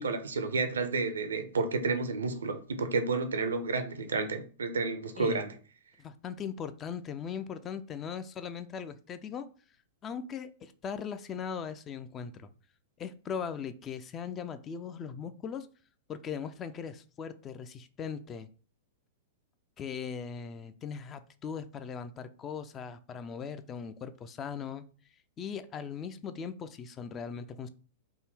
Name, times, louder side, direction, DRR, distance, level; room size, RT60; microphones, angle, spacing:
voice 1, 0.0-5.5, right 4 dB, 75° right, 0.4 m, -31 dB
voice 2, 6.0-9.5 10.0-12.5 13.0-15.7 16.1-18.5 19.8-24.8 25.4-27.7, left 7 dB, 25° left, 0.3 m, -39 dB
3.5 x 2.1 x 3.3 m
figure-of-eight pair, 100°, 0 cm